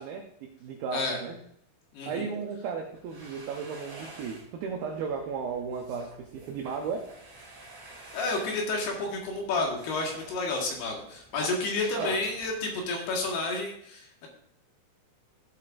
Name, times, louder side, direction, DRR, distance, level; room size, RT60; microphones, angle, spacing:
voice 1, 0.0-1.4 2.1-7.1 12.0-12.2, right 5 dB, 85° right, 3 dB, 2.1 m, -35 dB
voice 2, 1.9-2.3 8.1-14.3, left 3 dB, 65° left, 0 dB, 3.2 m, -30 dB
sound 1, 2.8-13.5, right 2 dB, 35° right, 3.6 m, -49 dB
16.0 x 7.6 x 2.5 m, 0.70 s
omnidirectional pair, 5.5 m